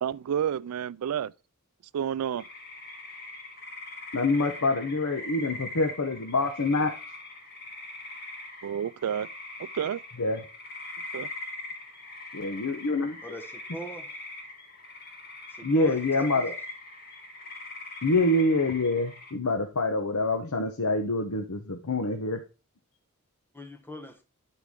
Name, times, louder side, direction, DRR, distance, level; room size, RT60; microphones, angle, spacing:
voice 1, 0.0-1.3 1.9-2.4 8.6-9.3 9.7-10.0 11.1-11.3, right 9 dB, 80° right, 0.3 m, -29 dB
sound 1, 2.4-19.3, left 2 dB, 45° left, 2.3 m, -42 dB
voice 2, 4.1-6.9 10.2-10.4 12.3-13.2 15.6-16.5 18.0-22.4, left 2 dB, 75° left, 1.0 m, -26 dB
voice 3, 13.2-14.2 15.5-16.5 23.5-24.2, right 1 dB, 10° left, 1.2 m, -41 dB
12.0 x 4.7 x 3.7 m
head